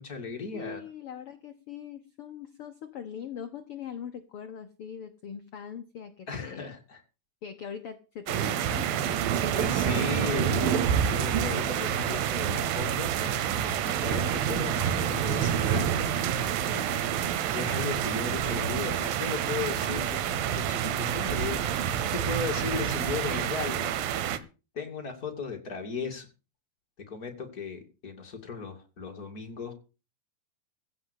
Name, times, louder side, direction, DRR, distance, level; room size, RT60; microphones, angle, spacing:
voice 1, 0.0-0.8 6.3-7.0 9.5-15.9 16.7-23.9 24.7-26.3 27.1-29.7, left 5 dB, 30° left, 3 dB, 2.6 m, -36 dB
voice 2, 0.5-6.7 7.4-9.3 22.3-22.4, left 8 dB, 65° left, 7 dB, 1.4 m, -41 dB
sound 1, 8.3-24.4, right 9 dB, 80° right, 2.8 m, -28 dB
15.5 x 5.9 x 8.3 m, 0.33 s
omnidirectional pair, 4.2 m